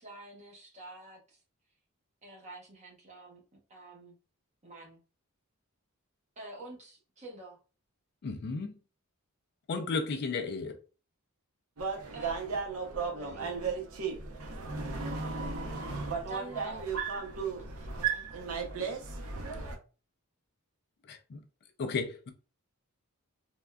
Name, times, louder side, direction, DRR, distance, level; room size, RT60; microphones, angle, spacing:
voice 1, 0.0-1.4 2.2-3.4 3.7-4.2 4.6-5.0 6.4-7.6 12.1-13.9 16.3-17.0 17.4-18.4, right 2 dB, 30° right, 0.9 m, -48 dB
voice 2, 8.2-8.7 9.7-10.8 21.1-21.4 21.8-22.3, left 4 dB, 50° left, 0.3 m, -34 dB
sound 1, 11.8-19.8, right 5 dB, 70° right, 0.6 m, -35 dB
3.4 x 2.2 x 2.2 m
head